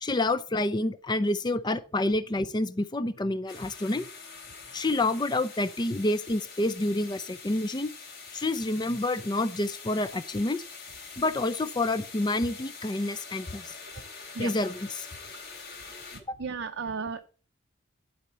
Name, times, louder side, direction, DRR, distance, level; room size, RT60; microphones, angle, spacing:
voice 1, 0.0-4.1 4.7-7.9 8.3-10.6 11.2-13.7 14.4-15.1, left 2 dB, 20° left, 0.4 m, -28 dB
sound 1, 3.5-16.2, left 5 dB, 50° left, 2.8 m, -45 dB
voice 2, 16.4-17.3, right 5 dB, 70° right, 0.6 m, -34 dB
11.5 x 4.3 x 6.8 m
head